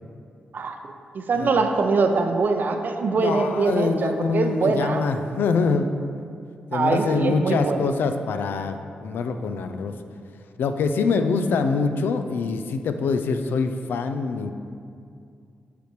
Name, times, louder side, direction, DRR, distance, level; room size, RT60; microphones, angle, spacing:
voice 1, 0.5-5.0 6.7-7.8, right 4 dB, 60° right, 5 dB, 0.6 m, -23 dB
voice 2, 3.1-6.0 6.7-9.9 10.6-14.5, left 4 dB, 80° left, 8 dB, 0.4 m, -24 dB
8.0 x 5.1 x 3.1 m, 2.4 s
cardioid pair, 55°, 4 cm